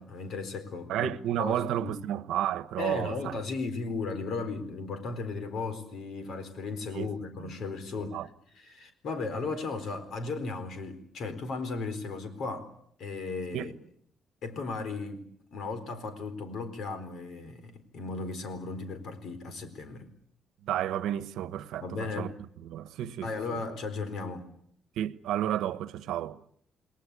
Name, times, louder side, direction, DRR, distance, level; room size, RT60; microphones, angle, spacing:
voice 1, 0.0-1.1 1.4-2.0 2.8-8.2 8.5-12.7 13.0-13.7 14.4-20.1 21.8-22.3 23.2-24.5, left 3 dB, 55° left, 4.2 m, -36 dB
voice 2, 0.9-3.4 6.9-7.1 7.4-7.5 8.0-8.3 13.5-13.7 20.6-22.3 22.6-23.6 25.0-26.4, right 11 dB, 90° right, 1.1 m, -32 dB
29.0 x 20.5 x 8.4 m
cardioid pair, 155°, 0 cm